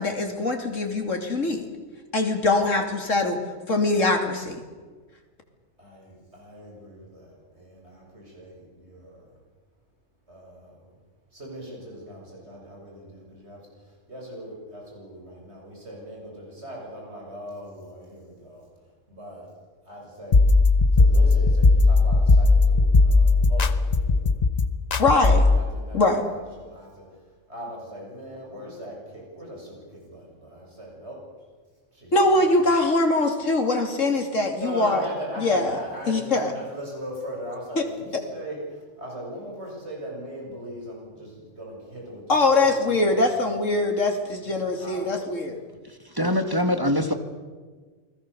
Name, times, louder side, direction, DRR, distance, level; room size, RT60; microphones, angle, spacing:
voice 1, 0.0-1.7 2.1-3.4 3.7-4.6 25.0-25.5 25.9-26.2 32.1-35.0 35.4-35.8 36.1-36.5 37.8-37.9 38.1-38.2 42.3-45.6, left 2 dB, 80° left, 4 dB, 3.3 m, -22 dB
voice 2, 5.8-9.4 10.3-10.9 11.3-13.6 13.9-18.7 19.1-19.5 19.8-20.5 20.9-24.4 24.9-25.1 25.5-27.1 27.5-31.2 31.9-32.5 34.6-42.6 42.9-43.4 44.6-45.2, equal, 55° right, -2 dB, 7.5 m, -39 dB
sound 1, 20.3-25.6, left 3 dB, 35° left, 1.0 m, -18 dB
voice 3, 46.0-47.1, left 1 dB, 15° right, 7 dB, 1.8 m, -23 dB
28.5 x 21.0 x 7.0 m, 1.4 s
omnidirectional pair, 1.3 m